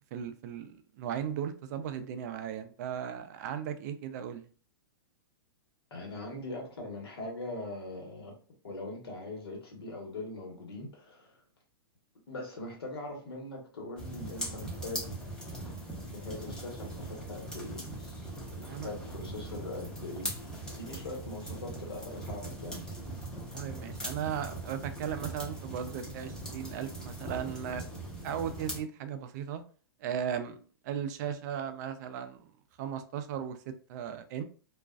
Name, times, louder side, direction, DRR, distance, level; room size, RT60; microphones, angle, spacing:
voice 1, 0.1-4.4 18.7-18.9 23.5-27.8 28.2-29.6 30.0-30.6 30.8-32.5 32.8-34.4, right 8 dB, 45° right, 0.4 m, -36 dB
voice 2, 5.9-8.3 8.6-11.4 12.3-15.2 15.9-20.4 20.8-22.8, left 2 dB, 85° left, 1.1 m, -41 dB
sound 1, 14.0-28.8, right 1 dB, 5° left, 0.7 m, -40 dB
2.4 x 2.2 x 2.4 m
hypercardioid pair, 135°, 13 cm